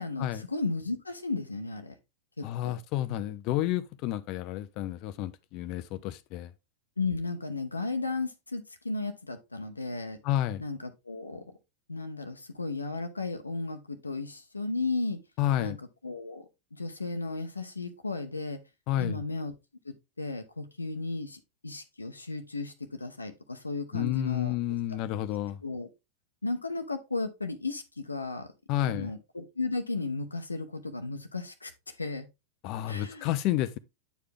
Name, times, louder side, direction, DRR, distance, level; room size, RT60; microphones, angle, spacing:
voice 1, 0.0-1.9 2.4-2.8 7.0-10.2 10.6-11.4 11.9-15.2 15.6-15.7 16.0-18.6 19.0-19.5 19.8-24.5 25.6-25.9 26.4-28.5 28.9-32.3 32.9-33.4, left 3 dB, 80° left, 0.8 m, -34 dB
voice 2, 2.4-6.5 10.2-10.6 15.4-15.8 18.9-19.2 23.9-25.6 28.7-29.1 32.6-33.8, left 13 dB, 40° left, 0.5 m, -30 dB
9.1 x 4.8 x 3.5 m
figure-of-eight pair, 90°, 0 cm